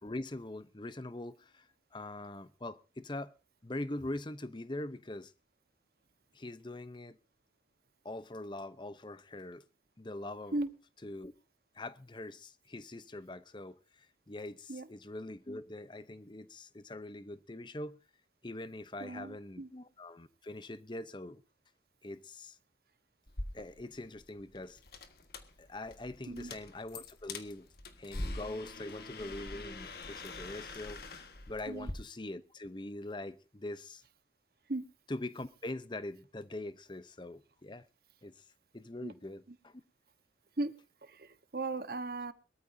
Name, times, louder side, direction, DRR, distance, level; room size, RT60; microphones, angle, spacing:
voice 1, 0.0-1.7 1.9-3.3 3.6-5.3 6.3-7.2 8.0-9.6 10.0-10.6 11.0-11.3 11.8-13.8 14.3-18.0 18.4-21.4 22.0-22.6 23.5-24.8 25.6-27.7 28.0-34.0 35.1-37.8 38.2-38.3 38.7-39.7, left 2 dB, 25° left, 0.7 m, -43 dB
voice 2, 19.0-19.7 26.3-26.5 31.7-31.9 34.7-34.9 39.0-39.1 39.5-39.6 40.6-40.7 41.0-42.3, right 2 dB, 55° right, 1.2 m, -37 dB
sound 1, 23.3-31.9, left 2 dB, 60° left, 1.6 m, -44 dB
22.5 x 13.5 x 2.7 m
head